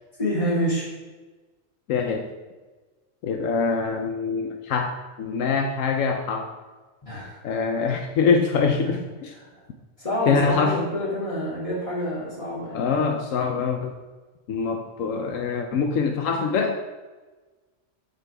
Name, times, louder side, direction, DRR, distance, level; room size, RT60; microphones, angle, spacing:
voice 1, 0.2-0.9 7.0-7.4 8.9-9.0 9.4-9.6 10.0-12.8, equal, 25° left, -6 dB, 2.4 m, -27 dB
voice 2, 1.9-2.3 3.2-6.5 7.4-9.0 10.3-10.8 12.7-13.9 14.5-16.8, left 5 dB, 80° left, 4 dB, 1.0 m, -24 dB
8.4 x 6.7 x 3.4 m, 1.3 s
omnidirectional pair, 1.4 m